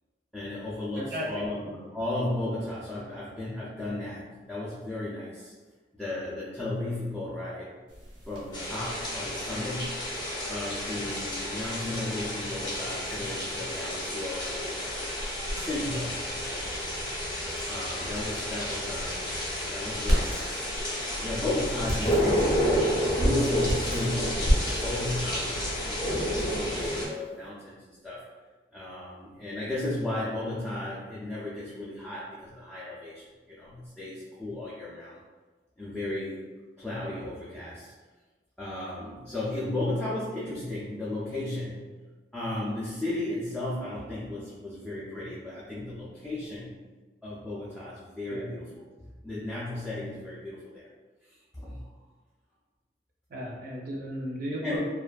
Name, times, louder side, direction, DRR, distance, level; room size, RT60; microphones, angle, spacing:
voice 1, 0.3-5.5 5.9-7.8 8.3-10.0 10.5-15.1 15.5-17.0 17.7-22.6 23.1-28.3 28.7-35.2 35.8-36.5 36.8-37.9 38.6-41.9 42.3-46.8 47.2-48.8 49.2-50.9 51.2-51.9 54.6-54.8, left 1 dB, 5° left, -8 dB, 0.3 m, -35 dB
voice 2, 1.0-1.5 48.3-48.6 53.3-54.8, equal, 55° right, -3 dB, 0.6 m, -35 dB
sound 1, 7.9-27.5, equal, 75° right, 1.0 m, -35 dB
sound 2, 8.5-27.1, equal, 25° left, 0.7 m, -31 dB
sound 3, 21.1-27.0, equal, 60° left, 0.5 m, -39 dB
2.5 x 2.3 x 2.3 m, 1.3 s
head